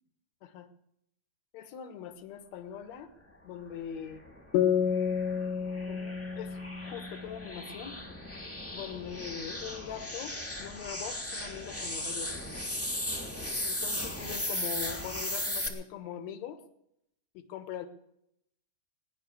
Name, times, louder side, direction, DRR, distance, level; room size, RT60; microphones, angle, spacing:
voice 1, 1.5-3.1 3.4-4.2 5.8-8.0 8.7-12.4 13.6-16.6 17.3-17.9, left 9 dB, 65° left, 7 dB, 1.8 m, -42 dB
sound 1, 4.1-15.7, left 1 dB, 5° left, 1.1 m, -37 dB
sound 2, 4.5-8.0, left 7 dB, 90° left, 3.5 m, -31 dB
18.5 x 11.0 x 6.9 m, 0.77 s
omnidirectional pair, 4.8 m